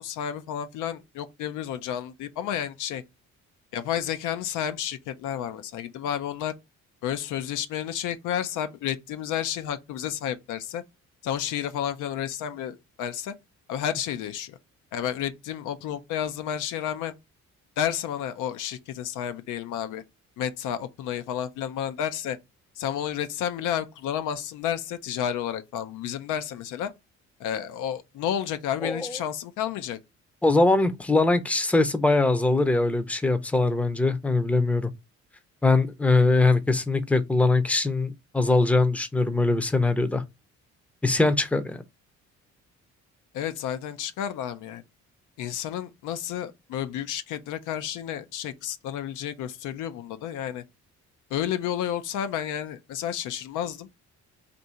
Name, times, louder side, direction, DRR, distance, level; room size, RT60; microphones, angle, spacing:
voice 1, 0.0-3.0 3.7-6.5 7.0-10.8 11.2-13.3 13.7-14.6 14.9-17.1 17.8-20.0 20.4-22.4 22.8-26.9 27.4-30.0 43.3-44.8 45.4-50.6 51.3-54.0, left 9 dB, 90° left, 0.5 m, -31 dB
voice 2, 28.8-29.2 30.4-34.9 35.6-40.2 41.0-41.8, left 3 dB, 5° left, 0.5 m, -22 dB
2.7 x 2.6 x 4.3 m
cardioid pair, 90°, 30 cm